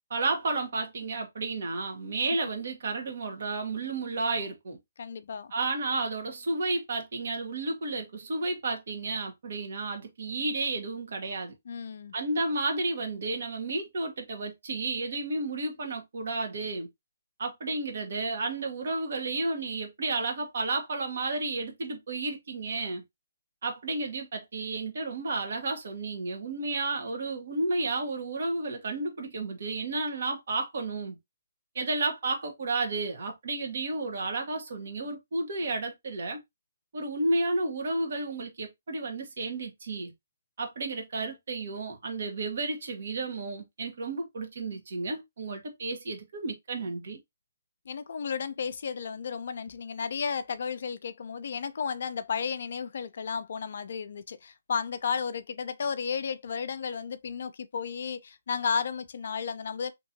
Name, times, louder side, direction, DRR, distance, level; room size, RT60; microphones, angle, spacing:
voice 1, 0.1-4.8 5.5-11.5 12.1-16.9 17.4-23.0 23.6-31.2 31.7-36.4 36.9-40.1 40.6-47.2, right 3 dB, 65° right, 1.1 m, -32 dB
voice 2, 5.0-5.5 11.7-12.1 47.9-59.9, left 6 dB, 65° left, 0.4 m, -33 dB
2.9 x 2.6 x 2.7 m
hypercardioid pair, 145°, 0 cm